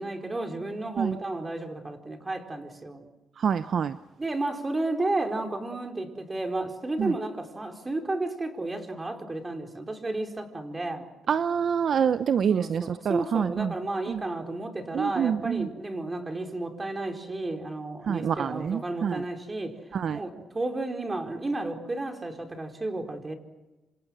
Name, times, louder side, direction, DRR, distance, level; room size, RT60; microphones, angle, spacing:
voice 1, 0.0-3.1 4.2-11.1 12.4-23.3, right 2 dB, 20° right, 4 dB, 4.4 m, -32 dB
voice 2, 3.4-4.0 7.0-7.1 11.3-13.7 14.1-14.2 14.9-15.7 18.1-19.2 19.9-20.2, right 7 dB, 55° right, 12 dB, 0.8 m, -26 dB
27.0 x 27.0 x 6.4 m, 1.1 s
cardioid pair, 90°, 0 cm